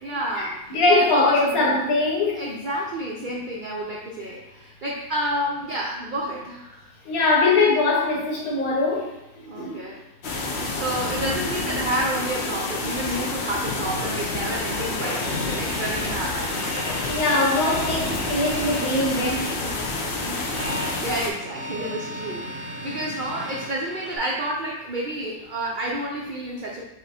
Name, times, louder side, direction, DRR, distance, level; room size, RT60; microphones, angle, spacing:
voice 1, 0.0-1.7 2.3-6.9 9.5-10.0 10.3-16.8 20.3-26.8, right 1 dB, 85° right, -2 dB, 0.4 m, -30 dB
voice 2, 0.7-2.4 7.0-9.1 9.5-9.8 15.0-15.3 16.9-19.8, left 2 dB, 80° left, -2 dB, 1.4 m, -22 dB
sound 1, 10.2-21.3, left 3 dB, 60° left, 0.8 m, -28 dB
sound 2, 15.2-24.2, equal, 25° right, 0.8 m, -36 dB
4.9 x 2.1 x 4.1 m, 0.91 s
omnidirectional pair, 1.5 m